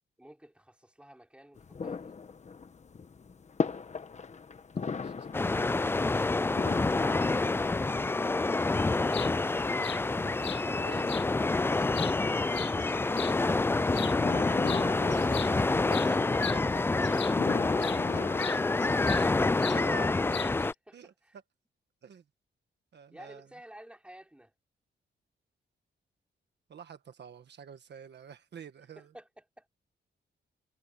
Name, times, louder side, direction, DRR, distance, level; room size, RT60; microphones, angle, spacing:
voice 1, 0.2-2.2 19.1-21.4 23.1-24.5 29.0-29.7, right 1 dB, 5° right, 4.7 m, -52 dB
sound 1, 1.6-19.2, left 5 dB, 35° left, 1.3 m, -39 dB
voice 2, 4.8-6.1 10.6-11.1 14.8-16.4 18.1-18.2 19.4-20.1 20.9-21.4 22.0-22.2 22.9-23.5 26.7-29.1, right 7 dB, 65° right, 1.5 m, -49 dB
sound 2, 5.3-20.7, left 3 dB, 10° left, 0.3 m, -27 dB
sound 3, 9.1-9.3 9.8-10.0 10.4-10.6 11.1-11.3 11.7-13.3 13.9-14.2 14.6-14.9 15.1-17.4 17.8-18.0 18.4-19.3 19.6-19.8 20.3-20.7, left 12 dB, 70° left, 0.5 m, -40 dB
wide cardioid pair, 120°, 19 cm